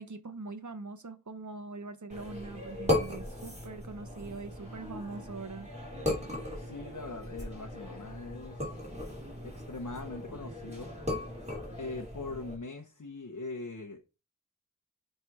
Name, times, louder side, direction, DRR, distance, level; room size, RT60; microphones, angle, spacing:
voice 1, 0.0-5.7, right 3 dB, 65° right, 0.9 m, -42 dB
sound 1, 2.1-12.6, left 1 dB, 20° right, 3.2 m, -37 dB
voice 2, 6.5-8.7 9.4-10.9 11.8-14.0, left 3 dB, 60° left, 0.9 m, -41 dB
7.5 x 3.3 x 4.8 m
wide cardioid pair, 45°, 33 cm